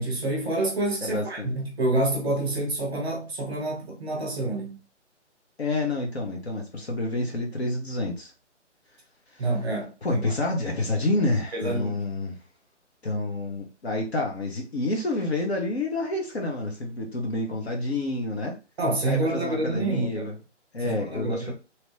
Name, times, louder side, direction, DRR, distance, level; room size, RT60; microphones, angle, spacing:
voice 1, 0.0-4.8 9.4-10.3 11.5-11.9 18.8-20.3 20.8-21.5, right 2 dB, 5° right, 0.9 m, -28 dB
voice 2, 1.0-1.5 5.6-8.3 9.3-9.4 10.0-12.4 13.0-18.5 19.1-20.3 20.7-21.5, left 2 dB, 60° left, 1.0 m, -28 dB
2.9 x 2.6 x 3.2 m
hypercardioid pair, 170°, 36 cm